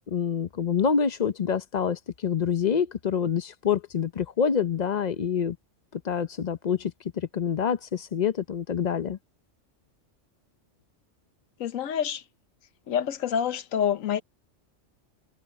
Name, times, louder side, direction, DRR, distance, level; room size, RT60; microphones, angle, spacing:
voice 1, 0.1-5.6 5.9-9.2, left 7 dB, 40° left, 0.7 m, -27 dB
voice 2, 11.6-12.2 12.9-14.2, left 8 dB, 85° left, 1.2 m, -27 dB
omnidirectional pair, 1.3 m